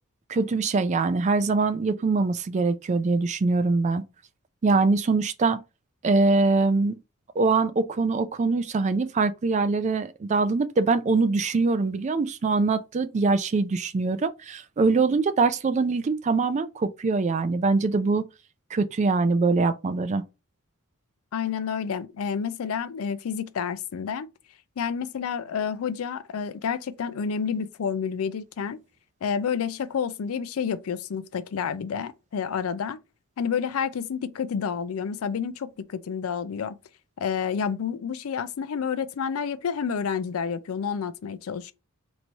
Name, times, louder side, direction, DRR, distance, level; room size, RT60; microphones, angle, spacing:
voice 1, 0.3-4.0 4.6-5.6 6.0-7.0 7.4-18.2 18.7-20.2, right 3 dB, 35° right, 0.3 m, -23 dB
voice 2, 21.3-24.3 24.8-28.8 29.2-33.0 33.4-36.8 37.2-41.7, left 6 dB, 90° left, 0.4 m, -29 dB
3.0 x 2.7 x 4.4 m
head